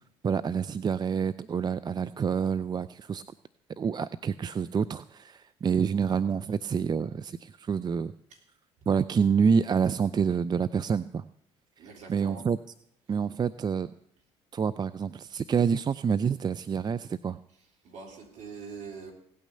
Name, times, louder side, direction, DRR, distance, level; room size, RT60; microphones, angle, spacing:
voice 1, 0.2-3.2 3.8-8.1 8.9-11.2 11.8-12.6 13.1-13.9 14.5-17.4, right 6 dB, 30° right, 15 dB, 0.5 m, -27 dB
voice 2, 11.8-12.5 17.8-19.1, right 5 dB, 60° right, 1 dB, 3.4 m, -43 dB
17.0 x 9.1 x 6.7 m, 0.74 s
hypercardioid pair, 55°, 14 cm